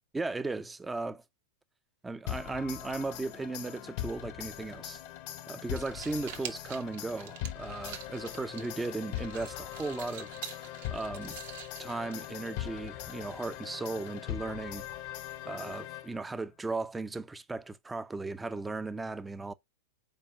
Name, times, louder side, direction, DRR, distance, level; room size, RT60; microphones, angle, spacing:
voice 1, 0.1-1.2 2.0-5.0 5.5-11.4 11.8-14.8 15.4-19.5, right 3 dB, 10° right, 0.6 m, -36 dB
sound 1, 2.3-16.4, left 13 dB, 50° left, 0.9 m, -41 dB
sound 2, 5.6-12.6, right 10 dB, 60° right, 1.2 m, -47 dB
5.5 x 4.3 x 4.9 m
hypercardioid pair, 105°, 0 cm